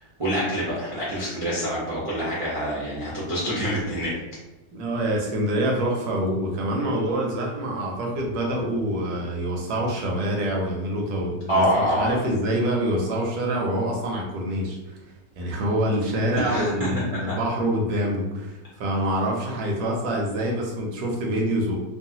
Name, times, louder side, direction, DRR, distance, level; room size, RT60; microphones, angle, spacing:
voice 1, 0.2-4.2 11.5-12.2 16.3-16.7, equal, 50° right, -9 dB, 0.3 m, -25 dB
voice 2, 4.7-15.0 15.4-21.8, right 1 dB, 70° right, -1 dB, 1.1 m, -26 dB
3.1 x 2.1 x 2.7 m, 1.0 s
omnidirectional pair, 1.9 m